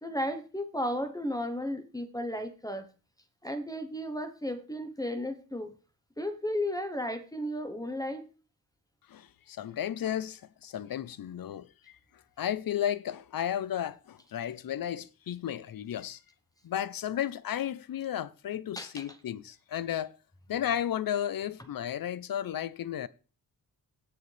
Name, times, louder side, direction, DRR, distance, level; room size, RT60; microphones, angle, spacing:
voice 1, 0.0-2.9 3.4-5.7 6.2-8.3 18.8-19.0, left 1 dB, 10° left, 0.9 m, -34 dB
voice 2, 9.1-11.7 12.4-16.2 16.6-20.1 20.5-23.1, left 10 dB, 65° left, 0.6 m, -33 dB
18.0 x 6.7 x 3.3 m
wide cardioid pair, 160°, 38 cm